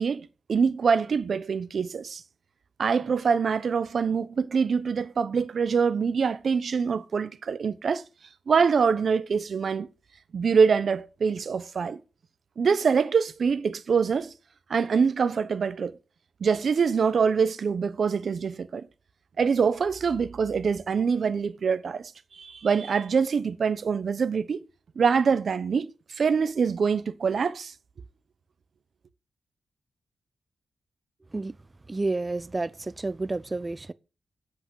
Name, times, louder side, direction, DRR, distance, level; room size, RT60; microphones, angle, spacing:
voice 1, 0.0-2.2 2.8-8.0 8.5-9.9 10.3-12.0 12.6-14.3 14.7-16.0 16.4-18.9 19.4-22.1 22.4-24.6 25.0-25.9 26.2-27.7, right 5 dB, 55° right, 0.9 m, -24 dB
voice 2, 31.9-33.9, right 2 dB, 20° right, 0.5 m, -30 dB
8.3 x 7.9 x 6.3 m
wide cardioid pair, 135°, 0 cm